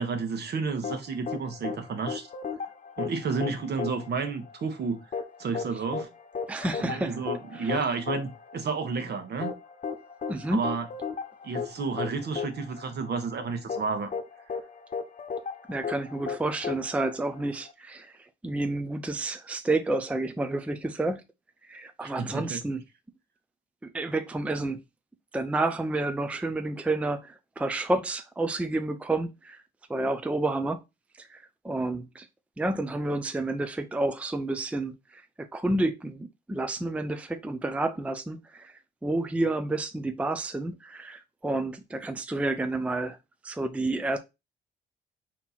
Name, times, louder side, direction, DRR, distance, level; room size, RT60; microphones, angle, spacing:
voice 1, 0.0-2.3 3.0-5.0 5.4-6.1 6.8-9.5 10.5-10.9 11.4-14.1 22.0-22.6, right 4 dB, 55° right, 1.2 m, -31 dB
sound 1, 0.8-17.7, left 6 dB, 40° left, 0.9 m, -36 dB
voice 2, 6.5-7.2 7.5-7.8 10.3-10.6 15.7-18.1 18.4-21.2 21.6-22.8 23.8-24.8 25.3-29.6 29.9-30.8 31.2-32.3 32.6-38.7 39.0-43.2 43.4-44.2, right 2 dB, 5° right, 0.5 m, -30 dB
4.3 x 2.9 x 4.1 m
cardioid pair, 90°, 20 cm